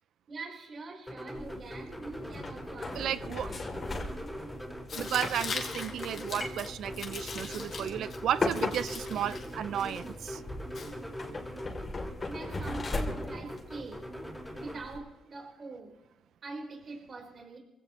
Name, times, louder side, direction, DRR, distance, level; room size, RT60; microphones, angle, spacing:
voice 1, 0.3-3.8 12.2-14.0 14.6-15.9 16.4-17.6, right 3 dB, 45° right, 4.2 m, -44 dB
sound 1, 1.1-14.8, equal, ahead, 4.7 m, -42 dB
sound 2, 1.4-15.0, left 2 dB, 35° left, 3.0 m, -39 dB
voice 2, 2.9-3.5 4.9-10.4, right 10 dB, 70° right, 0.6 m, -33 dB
Tearing, 4.9-11.5, left 5 dB, 55° left, 2.4 m, -42 dB
25.5 x 16.5 x 3.1 m
cardioid pair, 90°, 0 cm